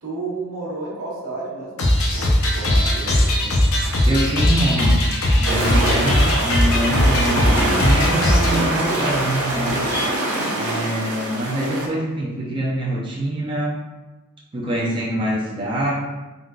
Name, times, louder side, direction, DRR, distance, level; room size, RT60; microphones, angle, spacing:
voice 1, 0.0-3.6 6.2-6.6, right 2 dB, 80° right, -5 dB, 1.0 m, -32 dB
sound 1, 1.8-8.6, left 1 dB, 70° left, 0.6 m, -19 dB
sound 2, 3.8-10.1, left 1 dB, 55° left, 1.1 m, -36 dB
voice 2, 4.1-5.0 5.4-9.8 10.5-13.8 14.5-15.9, right 1 dB, 25° right, -5 dB, 0.4 m, -24 dB
sound 3, 5.4-11.9, right 1 dB, 55° right, 0.7 m, -24 dB
3.7 x 2.3 x 2.3 m, 1.1 s
head